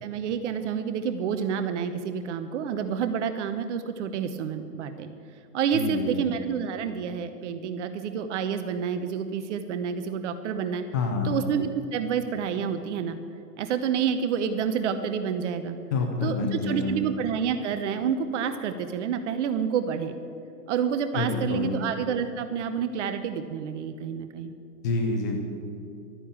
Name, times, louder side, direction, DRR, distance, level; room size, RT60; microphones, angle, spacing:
voice 1, 0.0-5.1 5.5-10.8 11.2-13.2 13.6-15.8 16.2-20.2 20.7-24.5, right 7 dB, 45° right, 9 dB, 1.0 m, -29 dB
voice 2, 5.7-6.2 10.9-11.4 15.9-17.0 21.1-21.7 24.8-25.4, left 4 dB, 15° left, 2 dB, 0.3 m, -27 dB
12.5 x 10.0 x 8.8 m, 2.6 s
hypercardioid pair, 130°, 49 cm